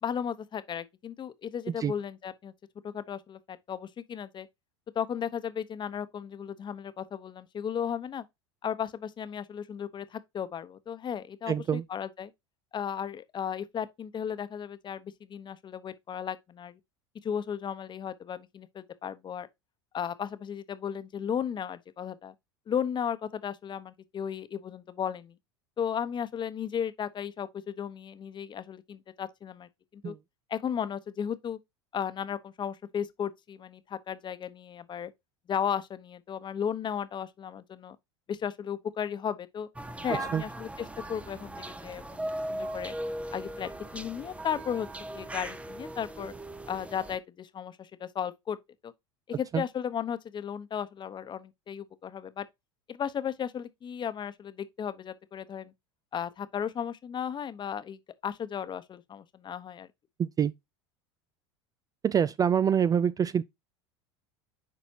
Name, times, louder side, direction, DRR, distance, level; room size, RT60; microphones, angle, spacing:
voice 1, 0.0-2.5 2.8-4.5 4.9-8.2 8.6-12.3 12.7-16.8 17.2-19.5 19.9-22.3 22.7-25.4 25.8-30.1 30.5-31.6 31.9-35.1 35.5-38.0 38.3-39.7 40.0-42.9 43.3-46.3 46.7-48.6 48.8-48.9 49.3-52.5 52.9-55.7 56.1-59.9, left 8 dB, 30° left, 1.0 m, -35 dB
voice 2, 11.5-11.8 30.0-30.2 40.3-40.4 49.5-49.6 60.2-60.5 62.0-63.4, right 8 dB, 25° right, 0.4 m, -25 dB
sound 1, 39.8-47.2, right 1 dB, 10° right, 0.8 m, -38 dB
10.0 x 4.1 x 2.8 m
hypercardioid pair, 90°, 15 cm